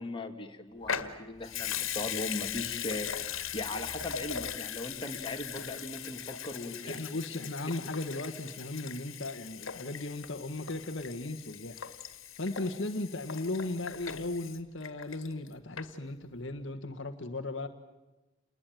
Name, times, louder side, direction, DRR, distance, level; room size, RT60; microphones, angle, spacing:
voice 1, 0.0-7.1, left 2 dB, 25° left, 3 dB, 2.7 m, -39 dB
Water tap faucet / Sink (filling or washing) / Liquid, 0.8-15.5 15.8-15.9, left 8 dB, 80° left, 2.0 m, -39 dB
voice 2, 6.9-11.9 12.4-17.7, left 2 dB, 60° left, 7 dB, 1.5 m, -36 dB
29.0 x 21.0 x 9.1 m, 1.1 s
head